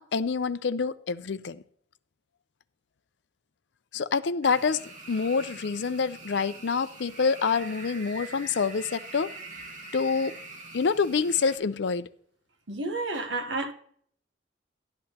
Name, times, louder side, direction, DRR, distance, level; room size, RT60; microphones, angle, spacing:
voice 1, 0.0-1.6 3.9-4.8 5.1-9.3 9.9-10.3 10.7-12.1, left 5 dB, 65° left, 0.5 m, -27 dB
sound 1, 4.4-11.6, right 2 dB, 40° right, 1.7 m, -44 dB
voice 2, 12.7-13.7, right 2 dB, 75° right, 1.1 m, -30 dB
13.0 x 10.5 x 2.9 m
head